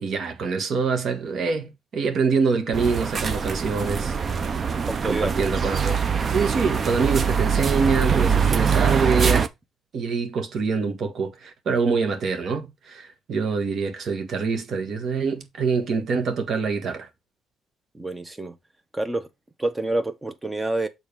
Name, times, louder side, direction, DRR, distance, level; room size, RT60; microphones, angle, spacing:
voice 1, 0.0-4.2 5.1-6.0 6.3-9.5 9.9-17.1, right 5 dB, 60° right, 1.8 m, -25 dB
sound 1, 2.7-9.5, right 6 dB, 45° right, 0.8 m, -23 dB
voice 2, 4.9-5.3 17.9-18.6 18.9-19.3 19.6-20.9, right 2 dB, 15° right, 1.2 m, -27 dB
7.0 x 3.8 x 5.2 m
cardioid pair, 90°, 0 cm